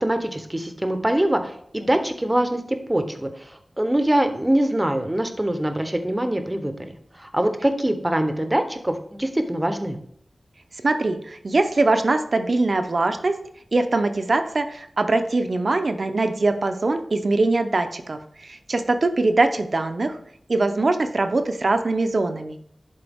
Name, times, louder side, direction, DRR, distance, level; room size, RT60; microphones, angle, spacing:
voice 1, 0.0-2.6 2.9-3.5 3.8-6.9 7.2-10.0, right 1 dB, 15° right, 7 dB, 0.8 m, -23 dB
voice 2, 10.8-13.4 13.7-20.2 20.5-22.6, right 2 dB, 55° right, 8 dB, 0.7 m, -22 dB
11.0 x 3.9 x 3.6 m, 0.68 s
wide cardioid pair, 90°, 0 cm